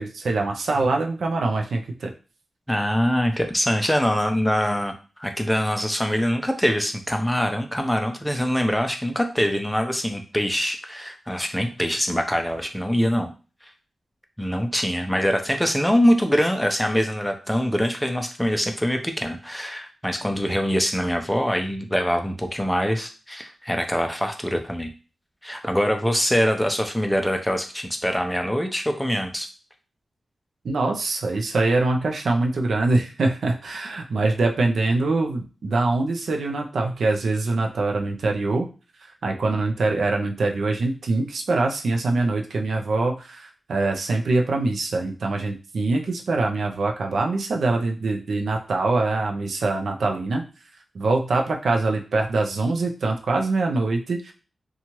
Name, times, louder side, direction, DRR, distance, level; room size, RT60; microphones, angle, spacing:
voice 1, 0.0-2.1 30.6-38.7 39.0-50.5 50.9-54.3, right 3 dB, 75° right, 2 dB, 0.5 m, -24 dB
voice 2, 2.7-13.3 14.4-24.9 25.4-29.5, equal, 5° left, 4 dB, 0.4 m, -24 dB
2.8 x 2.3 x 2.9 m, 0.34 s
wide cardioid pair, 120°, 0 cm